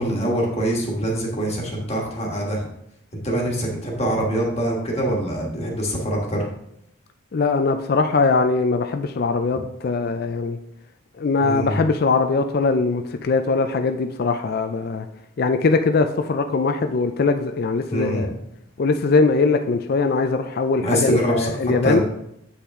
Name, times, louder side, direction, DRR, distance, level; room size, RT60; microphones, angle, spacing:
voice 1, 0.0-2.7 3.1-6.4 11.4-11.8 17.9-18.3 20.8-22.0, right 1 dB, 30° left, -1 dB, 1.5 m, -24 dB
voice 2, 7.3-10.6 11.2-15.1 15.4-18.3 18.8-22.0, left 4 dB, 45° left, 7 dB, 0.4 m, -21 dB
8.1 x 5.7 x 3.6 m, 0.77 s
head